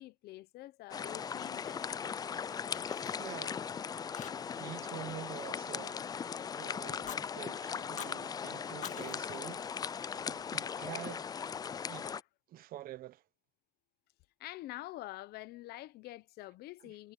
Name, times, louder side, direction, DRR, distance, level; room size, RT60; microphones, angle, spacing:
voice 1, 0.0-1.8 14.4-17.1, left 16 dB, 60° left, 1.0 m, -46 dB
sound 1, 0.9-12.2, left 7 dB, 20° left, 0.4 m, -39 dB
Fire, 1.2-2.2 2.5-3.7 4.1-4.7 5.0-6.4 6.8-7.2 7.8-8.2 8.7-10.2, left 9 dB, 45° left, 1.8 m, -50 dB
voice 2, 3.2-3.7 4.5-9.7 10.3-11.3 11.9-12.1 12.5-13.2 16.8-16.9, right 13 dB, 55° right, 1.2 m, -47 dB
cardioid pair, 120°, 18 cm